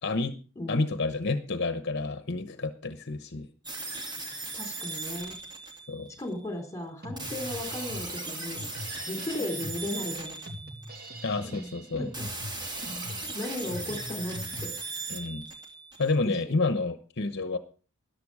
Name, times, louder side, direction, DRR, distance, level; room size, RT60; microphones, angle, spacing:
voice 1, 0.0-0.4 0.7-3.5 5.9-6.1 11.2-12.1 15.1-15.5 16.0-17.6, left 3 dB, 50° left, 10 dB, 1.0 m, -29 dB
voice 2, 0.6-0.9 4.5-5.3 6.2-8.6 9.1-10.4 11.4-11.5 11.9-12.2 13.3-14.7 16.2-16.7, left 1 dB, 15° left, 6 dB, 3.6 m, -36 dB
sound 1, 3.6-6.3 7.2-11.3 12.1-16.3, right 3 dB, 20° right, 2.5 m, -38 dB
Drum kit, 7.0-14.6, equal, 45° right, 2.7 m, -42 dB
13.5 x 11.5 x 4.9 m, 0.37 s
head